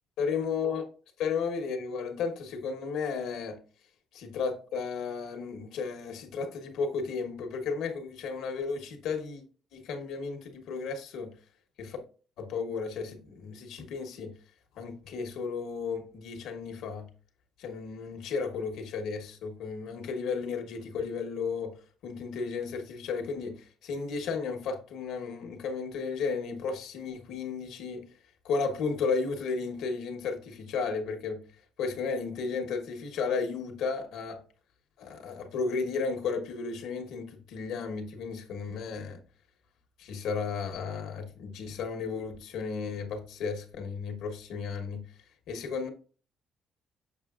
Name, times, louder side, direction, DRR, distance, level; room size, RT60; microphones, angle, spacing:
voice 1, 0.2-0.8 1.2-3.6 4.1-9.4 9.7-11.3 11.8-12.0 12.4-14.3 14.7-17.1 17.6-21.7 22.0-28.0 28.4-31.4 31.8-34.4 35.0-39.2 40.0-45.0 45.5-45.9, left 5 dB, 80° left, 1.1 m, -34 dB
6.6 x 5.9 x 2.4 m
cardioid pair, 175°, 0 cm